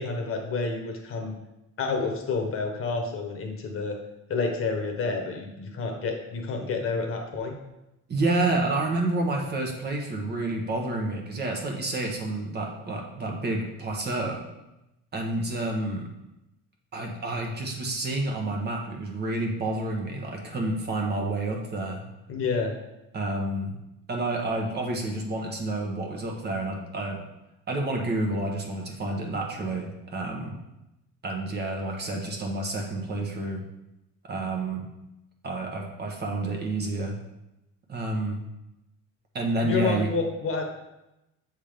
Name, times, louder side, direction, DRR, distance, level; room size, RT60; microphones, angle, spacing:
voice 1, 0.0-1.3 1.8-4.0 4.3-7.5 22.3-22.7 39.6-40.6, left 4 dB, 45° left, 3 dB, 1.1 m, -29 dB
voice 2, 8.1-14.4 15.1-16.1 16.9-22.0 23.1-23.7 24.1-27.2 27.7-30.5 31.2-33.6 34.3-34.9 35.4-37.2 37.9-38.4 39.3-40.1, right 2 dB, 30° right, 1 dB, 1.1 m, -29 dB
7.2 x 3.6 x 5.1 m, 0.92 s
cardioid pair, 150°, 32 cm